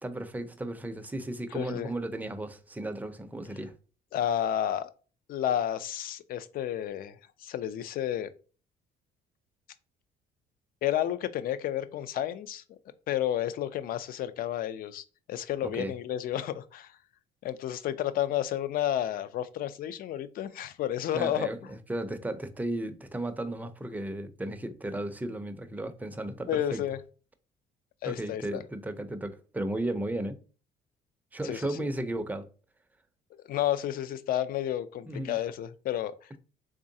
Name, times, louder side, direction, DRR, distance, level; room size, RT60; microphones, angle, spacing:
voice 1, 0.0-3.7 15.6-15.9 21.1-26.8 28.1-30.4 31.3-32.5 35.1-35.4, right 1 dB, 10° right, 0.5 m, -35 dB
voice 2, 1.5-1.9 4.1-4.9 5.3-8.3 10.8-12.6 13.1-16.9 17.4-21.5 26.5-27.0 28.0-28.6 31.4-31.7 33.3-36.1, left 11 dB, 60° left, 0.4 m, -31 dB
3.6 x 3.1 x 2.7 m
cardioid pair, 110°, 17 cm